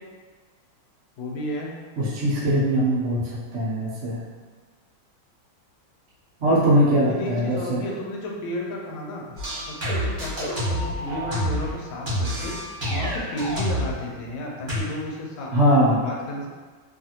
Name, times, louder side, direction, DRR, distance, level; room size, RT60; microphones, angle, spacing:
voice 1, 1.2-1.7 7.1-9.2 9.7-12.5 12.9-16.5, left 1 dB, 80° left, -1 dB, 1.3 m, -33 dB
voice 2, 2.0-4.2 6.4-7.8 15.5-16.0, equal, 85° right, -8 dB, 0.6 m, -21 dB
sound 1, 9.4-11.7 12.1-14.0 14.7-14.8, equal, 35° right, 0.9 m, -27 dB
3.2 x 2.5 x 2.7 m, 1.4 s
omnidirectional pair, 2.2 m